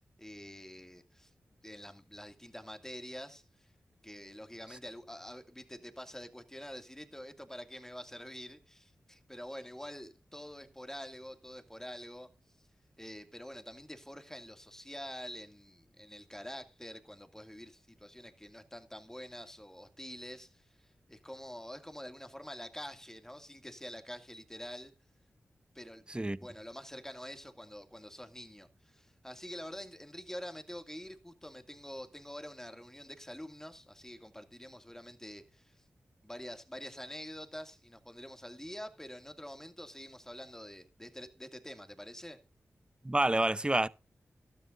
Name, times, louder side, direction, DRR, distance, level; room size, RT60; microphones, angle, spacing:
voice 1, 0.2-1.3 1.6-3.7 4.0-12.3 13.0-24.9 25.7-35.8 36.2-42.4, equal, 10° left, 2.3 m, -46 dB
voice 2, 43.0-43.9, right 1 dB, 20° right, 0.7 m, -28 dB
14.5 x 12.5 x 2.6 m
cardioid pair, 45°, 5 cm